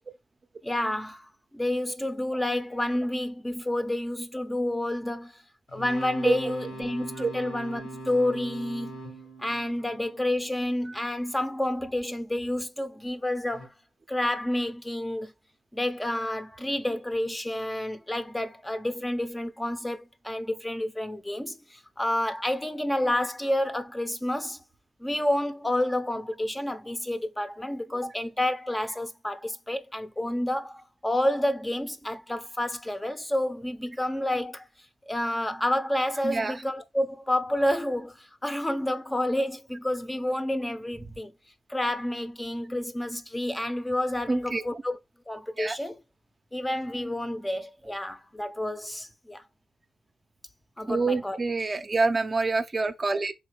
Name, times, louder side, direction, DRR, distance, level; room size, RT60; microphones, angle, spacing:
voice 1, 0.6-5.4 5.7-9.0 9.4-13.7 14.1-15.3 15.7-24.6 25.0-34.6 35.1-41.3 41.7-45.0 45.3-46.0 46.5-49.4 50.8-51.4, left 1 dB, 15° left, 0.5 m, -29 dB
sound 1, 5.7-10.7 13.5-13.7, right 1 dB, 85° left, 1.3 m, -41 dB
voice 2, 36.2-36.6 44.3-44.6 45.6-45.8 50.9-53.3, right 3 dB, 35° right, 0.5 m, -26 dB
3.8 x 2.6 x 3.2 m
cardioid pair, 60°, 0 cm